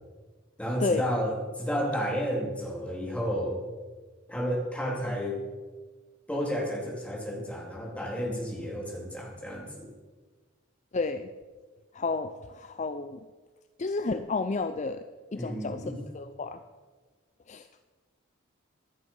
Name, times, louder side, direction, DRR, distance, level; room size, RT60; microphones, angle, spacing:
voice 1, 0.6-3.6 4.3-5.4 6.3-9.9 15.4-16.0, equal, 5° left, -2 dB, 3.1 m, -31 dB
voice 2, 10.9-11.3 11.9-13.2 13.8-15.0 15.3-15.8 16.1-16.6 17.5-17.7, left 3 dB, 35° left, 10 dB, 0.5 m, -31 dB
16.0 x 11.0 x 5.5 m, 1.4 s
head